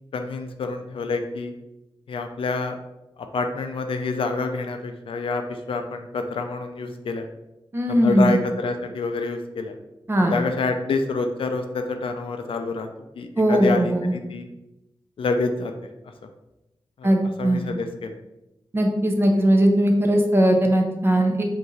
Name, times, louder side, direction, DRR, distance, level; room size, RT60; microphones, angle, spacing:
voice 1, 0.1-1.5 2.1-2.8 3.3-7.3 7.9-9.8 10.3-12.9 13.2-14.5 15.2-15.7 17.0-18.2, left 3 dB, 80° left, 6 dB, 0.4 m, -27 dB
voice 2, 7.7-8.4 10.1-10.3 13.4-14.1 17.0-17.6 18.7-21.5, right 1 dB, 25° right, 2 dB, 0.6 m, -19 dB
4.6 x 2.6 x 3.2 m, 0.93 s
wide cardioid pair, 100°, 9 cm